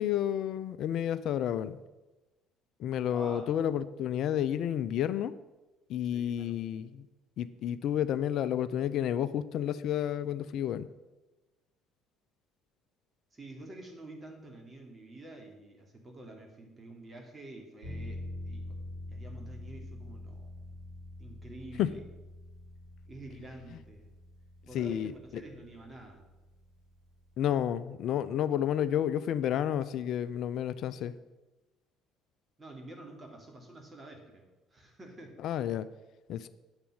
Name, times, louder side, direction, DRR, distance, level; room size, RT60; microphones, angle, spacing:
voice 1, 0.0-1.8 2.8-5.3 5.9-7.1 7.4-10.9 21.8-21.9 24.7-25.1 27.4-31.1 35.4-35.9 36.3-36.5, left 10 dB, 55° left, 14 dB, 0.5 m, -30 dB
voice 2, 3.0-3.5 6.1-6.5 13.3-18.6 19.1-20.5 21.2-22.0 23.1-24.1 24.7-26.2 32.6-35.4, right 1 dB, 25° right, 1 dB, 2.9 m, -48 dB
sound 1, 17.8-27.6, left 1 dB, 90° right, 3.3 m, -45 dB
9.0 x 6.9 x 7.4 m, 1.1 s
figure-of-eight pair, 55°, 0 cm